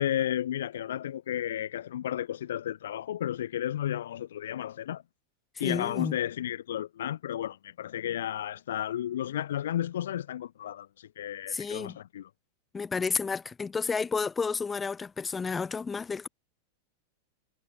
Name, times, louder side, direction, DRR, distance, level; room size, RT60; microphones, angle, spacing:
voice 1, 0.0-5.0 5.6-12.3, left 11 dB, 60° left, 1.7 m, -33 dB
voice 2, 5.5-6.2 11.5-12.0 12.7-16.3, left 5 dB, 15° left, 3.0 m, -31 dB
figure-of-eight pair, 90°, 0 cm